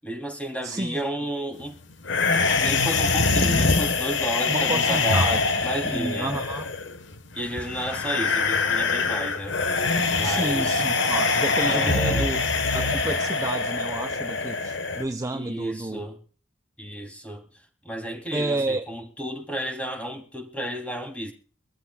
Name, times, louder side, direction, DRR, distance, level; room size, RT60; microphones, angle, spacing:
voice 1, 0.0-1.8 2.5-5.3 5.6-6.3 7.3-9.6 10.1-10.8 11.7-12.3 15.3-16.2 16.8-17.4 17.8-21.3, right 1 dB, 5° left, 3.0 m, -32 dB
voice 2, 0.6-1.3 4.5-5.4 5.8-6.7 10.2-12.4 12.7-16.0 18.3-18.9, right 2 dB, 15° right, 0.7 m, -30 dB
sound 1, 2.0-15.0, left 4 dB, 70° left, 1.3 m, -24 dB
24.0 x 14.0 x 2.3 m
head